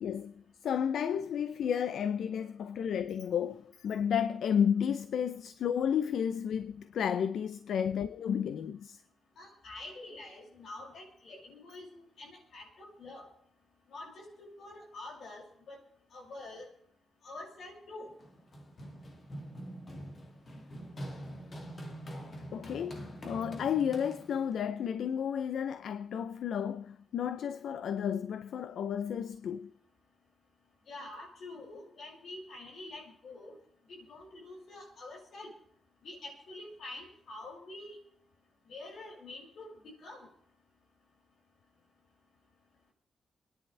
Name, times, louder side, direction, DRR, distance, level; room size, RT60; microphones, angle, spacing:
voice 1, 0.0-9.0 22.5-29.7, left 8 dB, 80° left, 0.5 m, -32 dB
voice 2, 9.4-13.3 13.9-15.8 16.1-16.7 17.2-18.1 30.9-33.6 33.9-35.5 36.0-38.0 38.7-39.7 40.0-40.3, left 2 dB, 65° left, 6.2 m, -46 dB
Run, 18.2-24.6, equal, 35° left, 2.1 m, -44 dB
27.5 x 10.5 x 3.3 m
wide cardioid pair, 150°, 0 cm